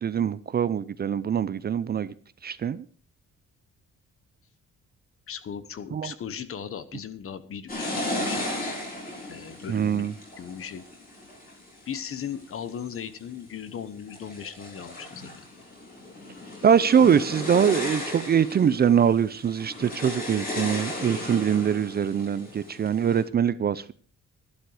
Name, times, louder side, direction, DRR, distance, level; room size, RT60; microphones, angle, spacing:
voice 1, 0.0-2.1 2.4-2.8 5.9-6.1 9.7-10.1 16.6-23.9, right 8 dB, 35° right, 0.5 m, -23 dB
voice 2, 5.3-7.9 8.3-8.8 9.3-10.1 10.4-10.8 11.9-15.4, left 8 dB, 50° left, 1.1 m, -37 dB
sound 1, 7.7-12.4 13.0-13.6 14.0-23.2, left 1 dB, 30° left, 4.3 m, -35 dB
12.5 x 11.5 x 4.8 m
cardioid pair, 160°, 29 cm